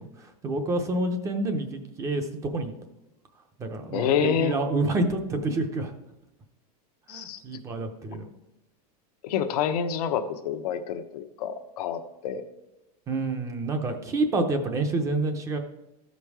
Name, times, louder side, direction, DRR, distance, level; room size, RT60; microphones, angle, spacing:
voice 1, 0.0-2.7 3.6-5.9 7.1-8.3 13.1-15.6, right 2 dB, 15° right, 6 dB, 0.6 m, -28 dB
voice 2, 3.9-4.5 7.1-7.4 9.2-12.4, left 8 dB, 80° left, 7 dB, 0.9 m, -28 dB
13.5 x 5.3 x 4.7 m, 0.92 s
supercardioid pair, 175°, 20 cm